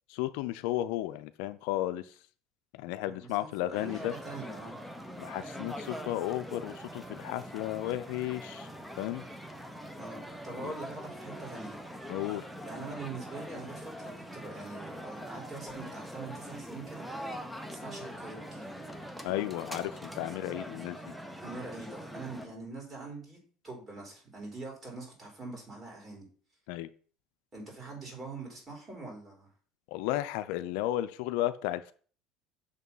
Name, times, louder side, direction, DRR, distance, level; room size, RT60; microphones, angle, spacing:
voice 1, 0.1-2.0 2.7-4.1 5.2-8.7 9.0-9.2 10.6-10.7 12.1-12.4 19.2-21.1 26.7-26.9 29.9-31.9, left 14 dB, 75° left, 12 dB, 0.4 m, -33 dB
voice 2, 3.0-4.8 10.0-11.8 12.7-17.1 17.7-18.7 21.4-26.3 27.5-29.5, right 3 dB, 25° right, -1 dB, 3.8 m, -43 dB
sound 1, 3.7-22.5, equal, ahead, 0.8 m, -43 dB
6.6 x 3.7 x 5.5 m, 0.43 s
supercardioid pair, 115°, 0 cm